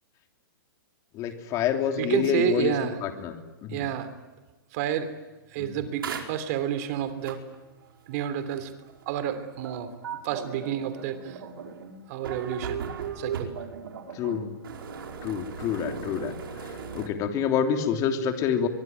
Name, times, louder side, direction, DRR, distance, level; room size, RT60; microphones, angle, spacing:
voice 1, 1.1-2.7 3.0-3.3 3.6-3.9 5.6-5.7 14.1-14.5 15.2-18.7, left 7 dB, 30° left, 5 dB, 3.2 m, -27 dB
voice 2, 2.0-3.0 3.7-4.1 4.7-5.1 5.5-7.4 8.1-8.7 9.0-9.9 10.2-11.4 12.1-12.8 13.2-13.5, right 9 dB, 45° right, 10 dB, 3.2 m, -30 dB
sound 1, 6.0-17.1, right 6 dB, 80° right, 4.8 m, -38 dB
23.5 x 23.0 x 9.6 m, 1.2 s
hypercardioid pair, 155°, 12 cm